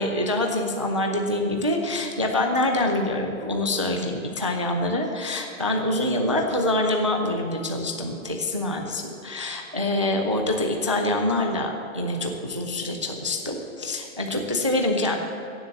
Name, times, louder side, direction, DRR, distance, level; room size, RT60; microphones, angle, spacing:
voice 1, 0.0-15.2, left 1 dB, 25° right, 3 dB, 0.3 m, -25 dB
17.0 x 7.5 x 7.0 m, 2.8 s
hypercardioid pair, 170°, 42 cm